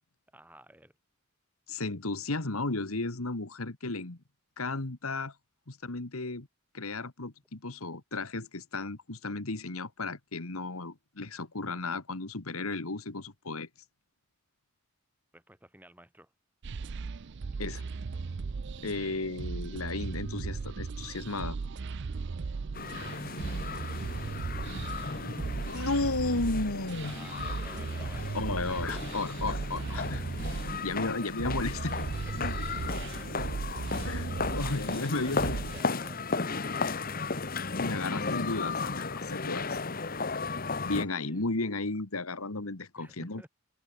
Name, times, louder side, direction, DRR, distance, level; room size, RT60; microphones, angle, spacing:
voice 1, 0.3-0.9 15.3-16.3 22.9-25.2 27.0-29.3 29.8-29.9 30.9-31.3 32.3-33.5 34.6-38.2 41.1-41.4 43.0-43.5, right 1 dB, 10° right, 7.7 m, -54 dB
voice 2, 1.7-4.2 4.6-5.3 5.7-6.5 6.7-13.7 17.6-17.9 18.8-21.6 25.6-27.2 28.3-30.2 30.8-32.0 32.4-32.5 32.9-33.0 34.0-36.0 37.8-39.8 40.8-43.5, left 3 dB, 85° left, 1.9 m, -34 dB
sound 1, 16.6-35.8, right 4 dB, 55° right, 0.5 m, -37 dB
sound 2, 22.7-41.0, left 4 dB, 40° left, 1.4 m, -35 dB
head